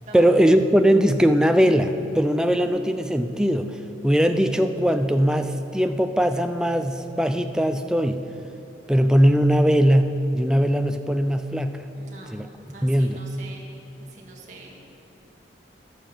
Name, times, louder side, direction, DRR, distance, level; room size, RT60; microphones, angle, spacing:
voice 1, 0.1-3.8 4.0-8.2 8.9-11.9 12.3-12.5 12.8-13.2, equal, 5° right, 7 dB, 0.4 m, -20 dB
voice 2, 12.0-12.3 12.7-13.6 14.1-14.8, right 3 dB, 40° right, -4 dB, 1.9 m, -44 dB
11.5 x 8.9 x 7.2 m, 2.8 s
head